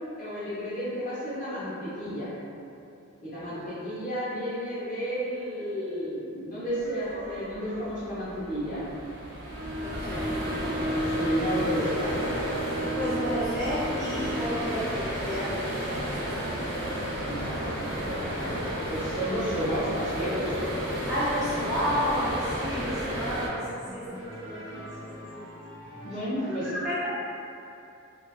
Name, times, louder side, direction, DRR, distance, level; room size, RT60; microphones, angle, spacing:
voice 1, 0.2-2.3 3.2-9.0 11.0-12.3 17.3-17.7 18.2-18.6 18.9-20.6 23.8-24.1 26.0-26.7, equal, 35° left, -11 dB, 0.7 m, -32 dB
sound 1, 6.8-23.5, equal, 50° right, 0.6 m, -33 dB
Bowed string instrument, 9.5-14.4, right 1 dB, 75° left, 0.4 m, -34 dB
voice 2, 9.7-10.9 12.9-16.5 16.8-17.0 17.6-17.7 21.1-23.6 23.9-24.9 25.3-25.5 26.5-27.1, equal, ahead, -14 dB, 0.3 m, -32 dB
sound 2, 11.9-26.2, equal, 90° right, 0.7 m, -44 dB
2.6 x 2.3 x 2.3 m, 2.7 s
head